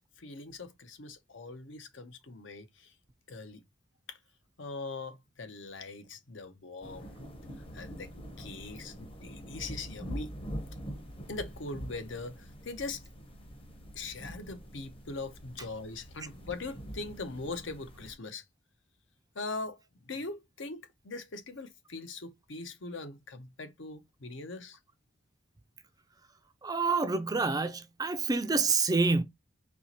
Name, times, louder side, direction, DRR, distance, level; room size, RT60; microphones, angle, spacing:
voice 1, 0.0-2.9 3.3-3.6 4.1-4.2 4.6-7.1 7.6-10.3 11.3-13.0 13.9-18.4 19.3-24.8, left 3 dB, 65° left, 0.7 m, -41 dB
sound 1, 6.8-18.1, equal, 25° left, 0.8 m, -44 dB
voice 2, 26.6-29.2, right 4 dB, 20° right, 0.4 m, -27 dB
4.4 x 2.9 x 2.9 m
head